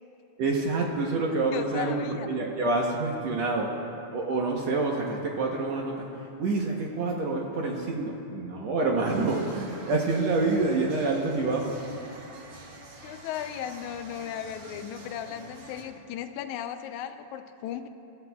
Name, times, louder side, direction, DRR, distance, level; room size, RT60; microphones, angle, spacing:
voice 1, 0.4-3.7 4.1-6.1 6.4-11.8, right 3 dB, 70° right, -1 dB, 2.0 m, -27 dB
voice 2, 1.5-2.3 13.0-17.9, left 10 dB, 85° left, 8 dB, 2.0 m, -36 dB
sound 1, 9.0-15.8, right 2 dB, 50° right, 1.6 m, -47 dB
23.5 x 13.5 x 2.3 m, 2.7 s
omnidirectional pair, 3.4 m